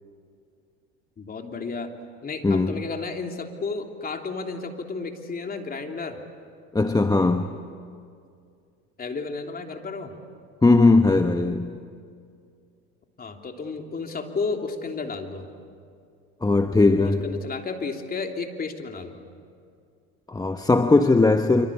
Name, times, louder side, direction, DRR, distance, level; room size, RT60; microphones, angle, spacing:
voice 1, 1.2-1.9 2.2-6.2 9.0-10.2 13.2-15.5 17.0-19.2, left 4 dB, 25° left, 3.3 m, -32 dB
voice 2, 2.4-2.8 6.7-7.6 10.6-11.8 16.4-17.2 20.3-21.7, left 3 dB, 10° left, 1.1 m, -19 dB
26.0 x 25.5 x 8.7 m
hypercardioid pair, 90°, 33 cm